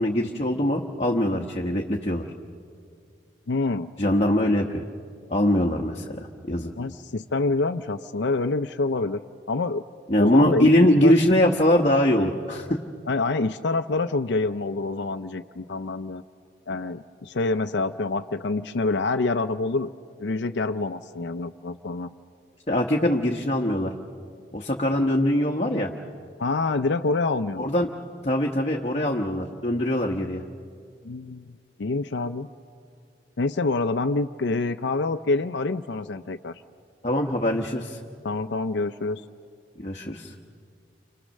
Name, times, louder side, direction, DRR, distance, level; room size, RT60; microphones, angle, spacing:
voice 1, 0.0-2.2 4.0-4.8 5.3-6.7 10.1-12.8 22.7-23.9 24.5-25.9 27.6-27.9 28.2-30.4 37.0-38.0 39.8-40.3, left 1 dB, 35° left, 0 dB, 1.1 m, -22 dB
voice 2, 3.5-3.9 6.8-9.2 9.5-9.8 10.2-10.7 11.0-11.1 13.1-16.2 16.7-19.9 20.2-22.1 26.4-27.7 31.0-31.5 31.8-32.5 33.4-36.5 38.2-39.2, left 3 dB, 75° left, 8 dB, 0.6 m, -26 dB
30.0 x 26.5 x 6.4 m, 2.3 s
head